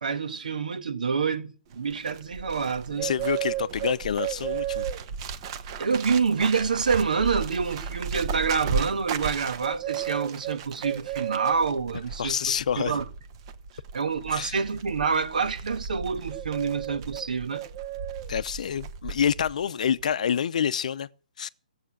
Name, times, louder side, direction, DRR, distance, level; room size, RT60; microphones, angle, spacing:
voice 1, 0.0-3.1 5.8-13.0 13.9-17.6, right 5 dB, 75° right, 1.6 m, -27 dB
Bird, 1.7-19.5 19.8-20.1, right 8 dB, 35° right, 1.1 m, -34 dB
voice 2, 3.0-4.8 12.2-13.0 14.3-14.6 18.3-21.1 21.4-21.5, left 8 dB, 60° left, 0.7 m, -27 dB
15.5 x 8.0 x 7.5 m
hypercardioid pair, 145°, 4 cm